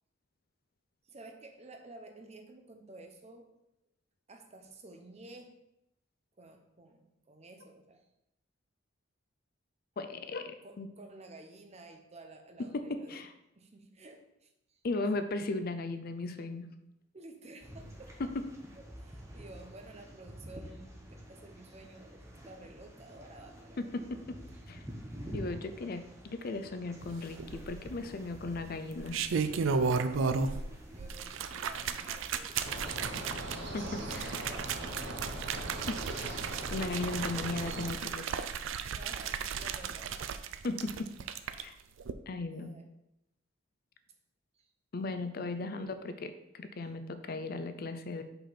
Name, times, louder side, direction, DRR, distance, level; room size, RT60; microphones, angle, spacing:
voice 1, 1.0-3.5 4.3-5.6 6.4-8.0 10.6-13.2 13.5-14.8 17.1-18.2 18.8-23.9 29.7-30.5 30.9-33.0 33.7-36.7 38.9-40.4 41.8-41.9 42.5-42.9 44.5-44.7 45.4-45.6 46.8-46.9, right 2 dB, 35° right, 5 dB, 0.8 m, -52 dB
voice 2, 10.0-10.9 13.1-13.3 14.8-16.7 18.2-18.3 23.8-24.2 24.7-24.8 25.3-29.2 33.7-34.3 36.7-38.4 40.6-40.9 41.6-41.7 42.3-42.7 44.9-48.2, left 3 dB, 50° left, 9 dB, 0.5 m, -36 dB
sound 1, 17.6-36.6, equal, 15° right, 1.1 m, -49 dB
sound 2, 27.4-28.0 28.9-30.7 31.0-41.6 42.0-42.1, right 5 dB, 90° right, 0.4 m, -34 dB
sound 3, 32.6-37.9, right 1 dB, 65° right, 1.1 m, -40 dB
5.8 x 5.5 x 4.3 m, 0.84 s
head